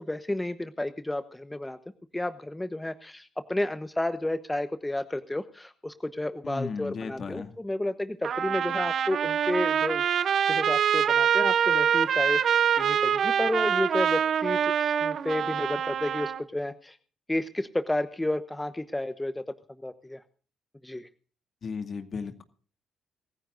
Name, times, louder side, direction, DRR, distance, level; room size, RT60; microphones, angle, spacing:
voice 1, 0.0-1.8 2.1-10.0 10.5-17.0 17.3-19.4 19.8-20.2 20.8-21.1, left 1 dB, 10° left, 12 dB, 1.1 m, -31 dB
voice 2, 6.4-7.5 21.6-22.4, left 5 dB, 50° left, 8 dB, 2.1 m, -35 dB
Trumpet, 8.2-16.4, right 8 dB, 60° right, 0.8 m, -25 dB
25.0 x 15.0 x 2.6 m, 0.40 s
hypercardioid pair, 50°, 0 cm